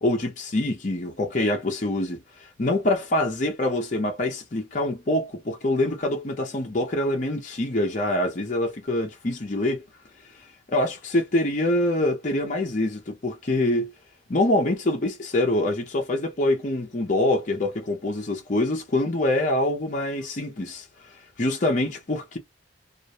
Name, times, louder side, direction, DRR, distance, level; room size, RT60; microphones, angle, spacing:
voice 1, 0.0-9.8 10.4-13.9 14.3-20.9 21.4-22.4, left 1 dB, 40° left, 0.6 m, -25 dB
2.5 x 2.1 x 2.7 m
head